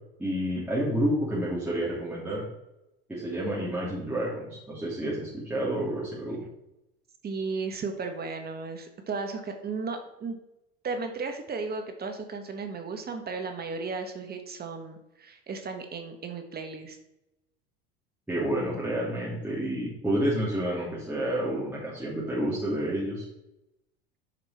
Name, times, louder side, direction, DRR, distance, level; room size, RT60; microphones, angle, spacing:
voice 1, 0.2-2.4 3.1-6.4 18.3-23.2, right 1 dB, 5° right, -8 dB, 3.0 m, -29 dB
voice 2, 7.2-10.4 10.8-17.0, right 4 dB, 30° right, 5 dB, 1.5 m, -35 dB
9.5 x 5.3 x 4.4 m, 0.90 s
hypercardioid pair, 80°, 30 cm